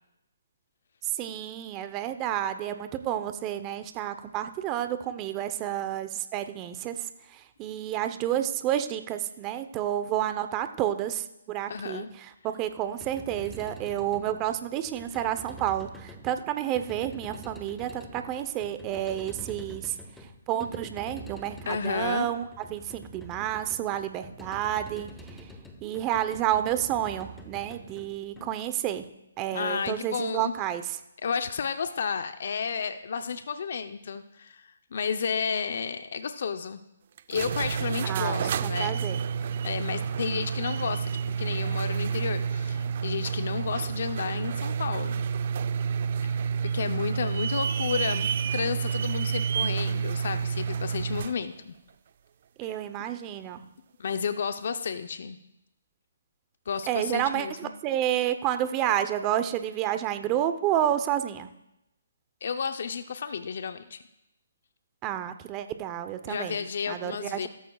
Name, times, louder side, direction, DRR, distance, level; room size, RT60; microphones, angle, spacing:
voice 1, 1.2-7.0 7.3-19.9 20.5-25.1 25.8-29.1 29.4-31.0 38.0-39.2 52.6-53.6 56.9-61.5 65.0-67.5, right 11 dB, 20° right, 10 dB, 0.8 m, -30 dB
voice 2, 11.7-12.1 21.7-22.3 28.4-28.5 29.5-30.5 31.2-36.8 37.3-39.0 39.6-41.1 41.4-45.2 46.2-51.7 52.6-52.8 54.0-55.4 56.7-57.7 62.4-64.0 66.3-67.5, left 6 dB, 60° left, 8 dB, 0.7 m, -32 dB
sound 1, 12.8-29.0, right 1 dB, 5° left, 1.2 m, -46 dB
sound 2, 37.2-51.4, right 6 dB, 45° right, 0.5 m, -29 dB
17.0 x 13.5 x 2.4 m, 0.88 s
hypercardioid pair, 150°, 0 cm